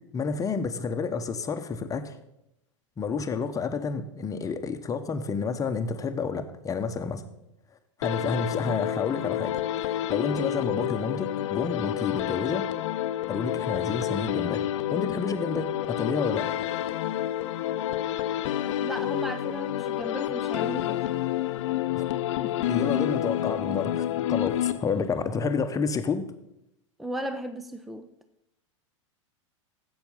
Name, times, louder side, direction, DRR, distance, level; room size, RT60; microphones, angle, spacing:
voice 1, 0.1-2.2 3.0-7.2 8.0-9.6 9.8-12.6 13.3-14.6 14.9-16.5 21.9-22.0 22.4-26.2, left 5 dB, 20° left, 9 dB, 1.0 m, -30 dB
sound 1, 8.0-25.2, left 12 dB, 65° left, 0.6 m, -29 dB
voice 2, 18.8-21.0 27.0-28.1, right 1 dB, ahead, 10 dB, 0.6 m, -35 dB
11.5 x 8.0 x 5.6 m, 0.85 s
hypercardioid pair, 100°, 16 cm